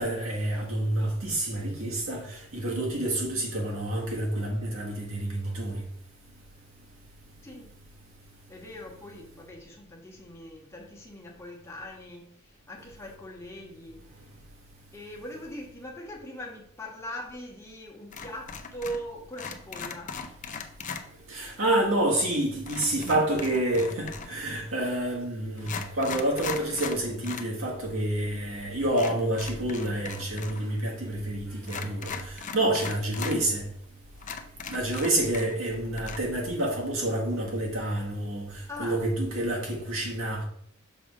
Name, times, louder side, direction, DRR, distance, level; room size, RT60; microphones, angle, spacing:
voice 1, 0.0-5.8 21.3-33.6 34.7-40.4, right 1 dB, 80° right, 1.6 m, -28 dB
voice 2, 8.5-14.0 14.9-20.2 38.7-39.0, equal, 15° left, 1.2 m, -41 dB
sound 1, 18.1-19.1 19.3-21.0 22.7-24.4 25.1-25.2 25.6-27.5 27.8-27.9 28.9-30.6 30.9-31.0 31.6-33.4 33.8-33.9 34.2-35.7 36.0-36.2, left 6 dB, 40° left, 0.6 m, -38 dB
6.3 x 3.5 x 4.8 m
head